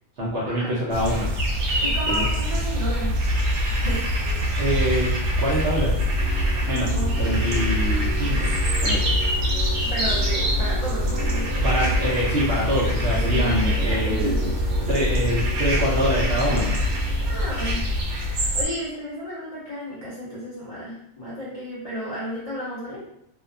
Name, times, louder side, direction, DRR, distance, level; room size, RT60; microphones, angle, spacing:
voice 1, 0.2-1.3 2.1-2.3 4.6-5.1 5.4-5.9 6.7-8.5 8.8-9.1 11.6-14.3 14.9-16.9, equal, 55° right, -6 dB, 0.7 m, -25 dB
sound 1, 0.9-18.6, equal, 90° right, 1.1 m, -24 dB
voice 2, 1.8-3.2 3.8-4.0 6.8-7.2 9.8-11.7 13.1-14.5 17.2-17.8 18.3-23.0, equal, 45° left, -9 dB, 0.5 m, -33 dB
sound 2, 5.7-18.3, left 3 dB, 70° left, 1.0 m, -38 dB
2.7 x 2.2 x 2.5 m, 0.75 s
omnidirectional pair, 1.5 m